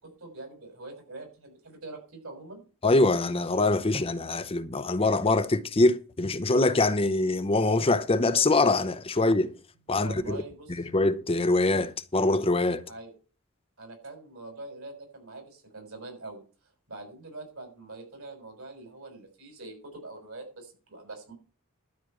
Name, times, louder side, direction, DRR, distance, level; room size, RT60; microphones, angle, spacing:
voice 1, 0.0-2.6 10.0-10.9 12.9-13.1 13.8-16.4 16.9-21.3, right 2 dB, 90° right, 6.1 m, -44 dB
voice 2, 2.8-9.5 9.9-10.4 10.7-12.8, left 2 dB, 25° left, 0.7 m, -24 dB
12.5 x 5.1 x 8.9 m
head